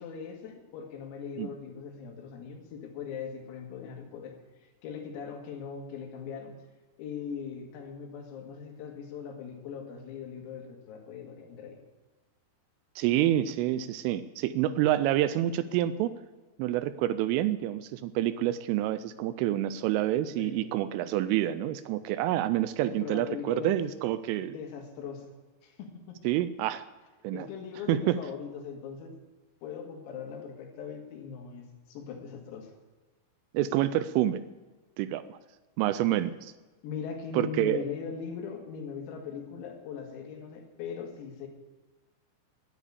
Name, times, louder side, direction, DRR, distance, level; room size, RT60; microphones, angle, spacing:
voice 1, 0.0-4.3 4.6-6.5 7.0-11.8 20.3-20.7 22.8-23.8 24.4-25.3 25.6-26.2 27.3-29.2 29.6-32.7 36.8-41.5, left 7 dB, 90° left, 2 dB, 4.6 m, -40 dB
voice 2, 13.0-16.1 16.6-24.6 26.2-26.8 27.2-27.5 27.9-28.2 33.5-34.4 35.0-35.4 35.8-36.5 37.3-37.9, right 13 dB, 85° right, 13 dB, 3.0 m, -28 dB
11.0 x 10.5 x 8.3 m, 1.2 s
omnidirectional pair, 5.9 m